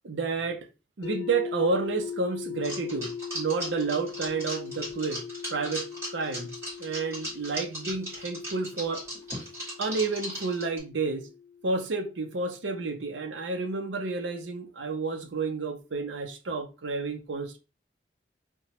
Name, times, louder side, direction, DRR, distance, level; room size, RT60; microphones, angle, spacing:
voice 1, 0.0-0.7 1.0-5.2 5.5-6.5 6.8-9.0 9.8-11.3 11.6-17.6, right 4 dB, 90° right, 0.6 m, -30 dB
sound 1, 1.0-12.9, left 6 dB, 65° left, 0.4 m, -40 dB
sound 2, 2.6-10.8, equal, 15° right, 1.6 m, -37 dB
2.9 x 2.2 x 2.9 m
head